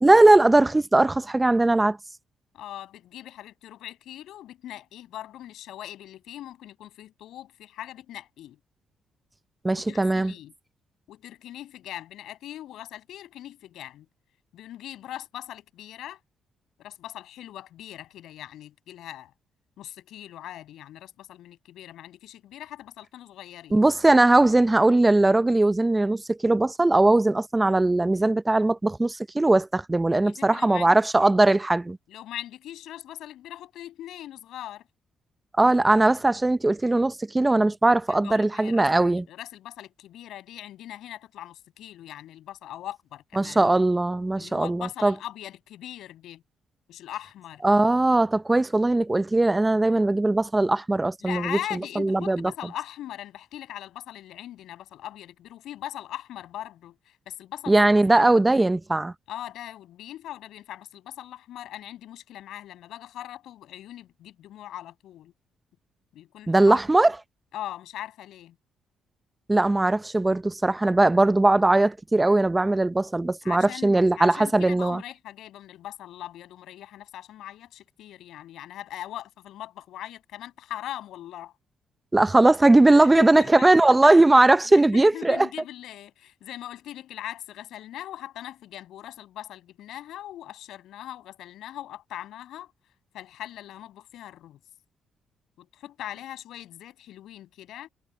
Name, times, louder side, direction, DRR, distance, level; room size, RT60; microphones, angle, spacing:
voice 1, 0.0-2.0 9.6-10.3 23.7-32.0 35.6-39.2 43.4-45.1 47.6-52.5 57.7-59.1 66.5-67.1 69.5-75.0 82.1-85.5, right 2 dB, 15° right, 0.6 m, -20 dB
voice 2, 2.5-8.6 9.7-10.5 11.1-14.1 14.5-16.2 16.8-19.3 19.8-23.8 30.2-30.9 32.1-34.9 38.1-43.8 44.4-46.4 46.9-47.6 51.2-58.3 59.3-65.3 66.1-66.8 67.5-68.6 73.4-81.5 83.0-84.0 84.7-92.7 93.1-94.6 95.6-97.9, left 12 dB, 80° left, 7.1 m, -40 dB
cardioid pair, 90°, 0 cm